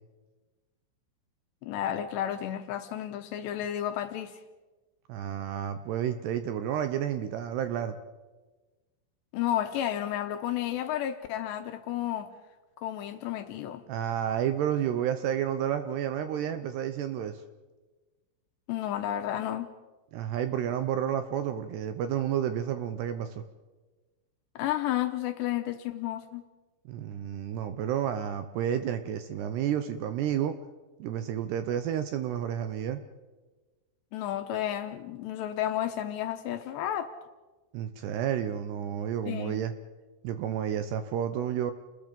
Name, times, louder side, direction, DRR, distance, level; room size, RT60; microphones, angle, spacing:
voice 1, 1.6-4.4 9.3-12.3 12.8-13.8 18.7-19.7 24.6-26.4 34.1-37.1 39.3-39.6, left 11 dB, 75° left, 8 dB, 2.8 m, -32 dB
voice 2, 5.1-8.0 13.9-17.4 20.1-23.4 26.9-30.6 31.0-33.0 37.7-39.7 40.2-41.7, right 10 dB, 75° right, 9 dB, 2.6 m, -30 dB
29.5 x 20.5 x 5.3 m, 1.2 s
omnidirectional pair, 5.6 m